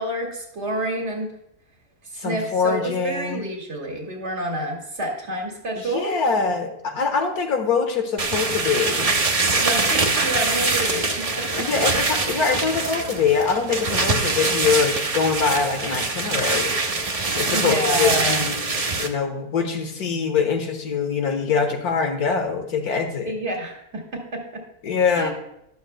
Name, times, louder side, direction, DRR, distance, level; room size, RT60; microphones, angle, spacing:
voice 1, 0.0-1.3 2.1-6.1 9.6-12.2 17.5-18.4 23.3-24.6 25.1-25.3, right 1 dB, 50° right, 1 dB, 2.4 m, -29 dB
voice 2, 2.2-3.4 5.8-9.1 10.9-11.1 11.5-17.1 17.4-18.7 19.0-23.3 24.8-25.3, left 5 dB, 90° left, 5 dB, 1.9 m, -24 dB
sound 1, 8.2-19.1, right 3 dB, 30° right, 0.7 m, -23 dB
13.0 x 12.0 x 2.2 m, 0.81 s
omnidirectional pair, 1.6 m